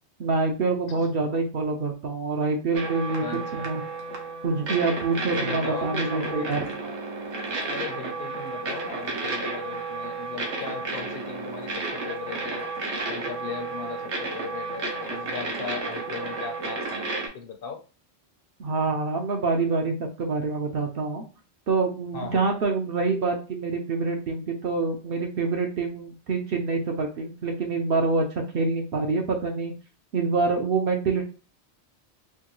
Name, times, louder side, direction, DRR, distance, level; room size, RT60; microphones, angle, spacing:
voice 1, 0.2-3.8 4.4-6.9 18.6-21.2 21.7-28.3 28.5-29.7 30.1-31.2, right 4 dB, 60° right, 3 dB, 0.8 m, -26 dB
sound 1, 2.7-17.3, right 3 dB, 85° right, 1.2 m, -32 dB
voice 2, 3.2-3.7 5.4-6.6 7.7-12.7 13.1-17.1 17.3-17.8 22.1-22.4, left 6 dB, 60° left, 4 dB, 0.8 m, -38 dB
4.4 x 2.2 x 3.0 m, 0.34 s
omnidirectional pair, 1.1 m